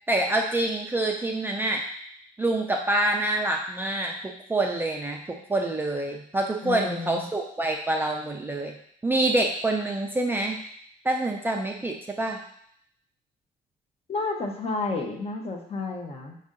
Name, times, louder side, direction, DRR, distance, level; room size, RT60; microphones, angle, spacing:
voice 1, 0.1-1.8 2.4-4.1 4.5-5.2 5.5-8.7 9.0-10.6 11.0-12.4, right 2 dB, 10° right, 1 dB, 0.4 m, -26 dB
voice 2, 6.6-7.3 14.1-16.4, left 3 dB, 35° left, 2 dB, 0.8 m, -31 dB
5.4 x 2.5 x 3.7 m, 0.67 s
cardioid pair, 110°, 17 cm